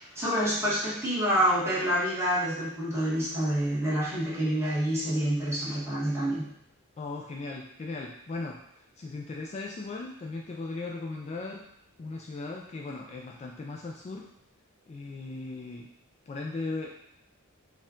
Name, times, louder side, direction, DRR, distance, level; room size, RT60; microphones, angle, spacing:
voice 1, 0.0-6.5, right 1 dB, 10° right, -8 dB, 1.4 m, -27 dB
voice 2, 7.0-11.7 12.0-14.3 14.9-15.9 16.3-16.9, left 3 dB, 30° left, 0 dB, 0.3 m, -37 dB
4.3 x 2.3 x 3.7 m, 0.79 s
head